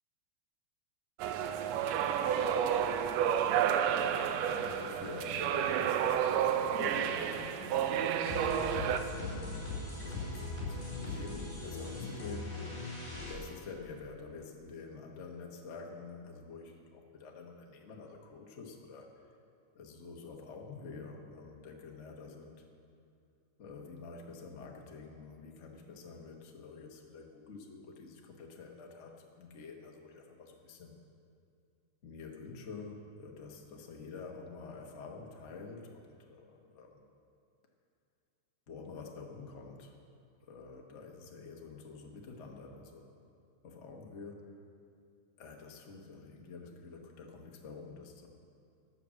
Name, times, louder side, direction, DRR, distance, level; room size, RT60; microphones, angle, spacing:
sound 1, 1.2-9.0, right 9 dB, 75° right, 1.6 m, -30 dB
voice 1, 4.0-12.6 13.2-19.1 19.7-22.6 23.6-31.0 32.0-37.1 38.7-40.0 40.5-43.1 43.6-44.6 45.4-48.3, left 4 dB, 60° left, 1 dB, 0.7 m, -48 dB
sound 2, 8.2-13.3, left 2 dB, 30° left, 4.7 m, -40 dB
12.5 x 8.8 x 7.6 m, 2.4 s
omnidirectional pair, 3.3 m